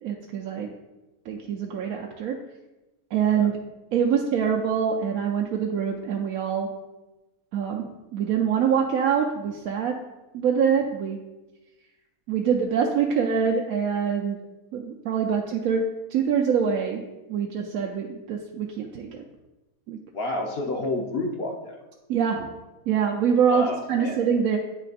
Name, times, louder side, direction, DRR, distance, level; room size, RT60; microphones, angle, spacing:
voice 1, 0.0-0.7 1.3-2.4 3.1-3.6 3.9-6.7 7.5-9.9 10.3-11.2 12.3-14.4 14.7-17.0 17.3-19.2 19.9-20.0 22.1-22.5 22.9-24.6, right 7 dB, 80° right, 1 dB, 1.0 m, -24 dB
voice 2, 20.1-21.8 23.5-24.2, left 2 dB, 50° left, 1 dB, 0.8 m, -30 dB
9.0 x 3.3 x 3.9 m, 1.1 s
omnidirectional pair, 1.5 m